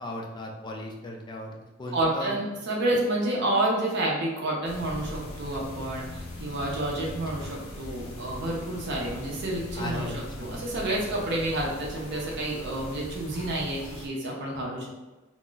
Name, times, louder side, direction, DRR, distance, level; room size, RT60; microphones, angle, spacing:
voice 1, 0.0-1.5 1.8-2.3 7.4-7.5 9.8-10.8, left 1 dB, 20° left, 1 dB, 0.3 m, -37 dB
voice 2, 1.9-10.1 10.4-15.0, right 1 dB, 55° right, -3 dB, 0.5 m, -29 dB
sound 1, 4.6-14.1, left 1 dB, 85° left, 0.6 m, -40 dB
2.4 x 2.0 x 3.7 m, 1.1 s
head